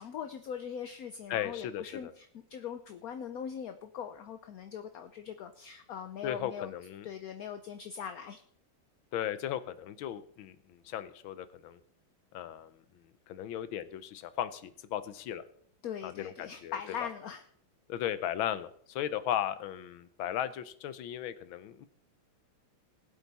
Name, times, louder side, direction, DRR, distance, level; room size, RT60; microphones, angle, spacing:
voice 1, 0.0-6.7 7.0-8.4 15.8-17.4, left 8 dB, 65° left, 8 dB, 1.0 m, -41 dB
voice 2, 1.3-2.1 6.2-7.1 9.1-11.8 12.3-15.4 16.0-17.1 17.9-21.9, left 11 dB, 80° left, 14 dB, 1.6 m, -36 dB
19.5 x 8.2 x 4.1 m, 0.64 s
omnidirectional pair, 2.2 m